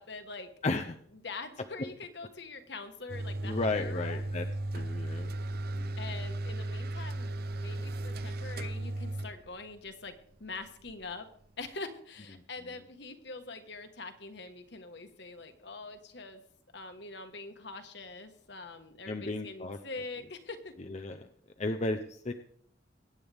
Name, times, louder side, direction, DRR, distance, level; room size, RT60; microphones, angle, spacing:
voice 1, 0.0-0.5 1.1-4.2 6.0-10.1 10.4-11.3 11.6-16.4 16.7-20.7, left 3 dB, 65° left, 7 dB, 1.5 m, -44 dB
voice 2, 0.6-1.0 3.4-4.5 4.7-5.3 5.7-6.0 19.1-19.8 20.9-21.3 21.6-22.3, left 2 dB, 35° left, 5 dB, 0.7 m, -34 dB
sound 1, 3.1-11.7, right 1 dB, 55° right, 0.6 m, -36 dB
22.5 x 9.7 x 3.5 m, 0.66 s
head